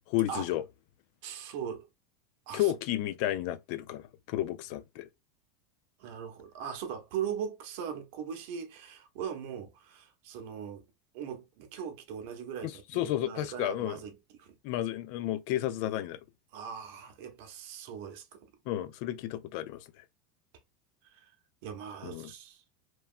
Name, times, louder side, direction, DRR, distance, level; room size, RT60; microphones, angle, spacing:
voice 1, 0.1-0.6 2.5-5.1 12.6-14.0 14.6-16.2 18.7-20.0 22.0-22.3, left 14 dB, 50° left, 0.3 m, -32 dB
voice 2, 1.2-1.9 2.5-2.7 6.0-10.8 11.1-14.5 16.5-18.5 21.0-21.3 21.6-22.6, right 8 dB, 55° right, 0.7 m, -40 dB
2.9 x 2.2 x 2.4 m
supercardioid pair, 170°, 0 cm